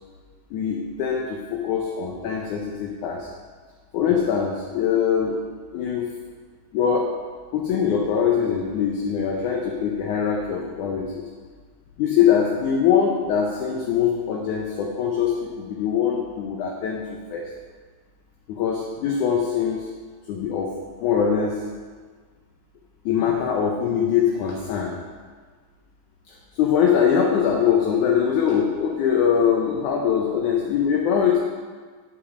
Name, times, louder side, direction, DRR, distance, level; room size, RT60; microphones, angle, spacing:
voice 1, 0.5-3.3 3.9-5.4 5.7-6.1 6.7-7.1 7.5-11.3 12.0-17.5 18.5-19.9 20.3-20.7 21.0-21.7 23.1-24.9 26.3-31.4, left 7 dB, 70° left, -1 dB, 2.1 m, -22 dB
8.9 x 8.2 x 4.9 m, 1.5 s
omnidirectional pair, 4.1 m